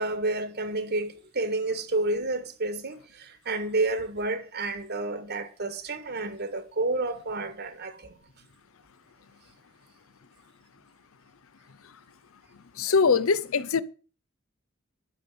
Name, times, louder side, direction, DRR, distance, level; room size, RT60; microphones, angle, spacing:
voice 1, 0.0-8.1, right 2 dB, 50° right, 1.7 m, -30 dB
voice 2, 12.8-13.8, left 5 dB, 80° left, 0.7 m, -22 dB
12.5 x 6.9 x 6.8 m
head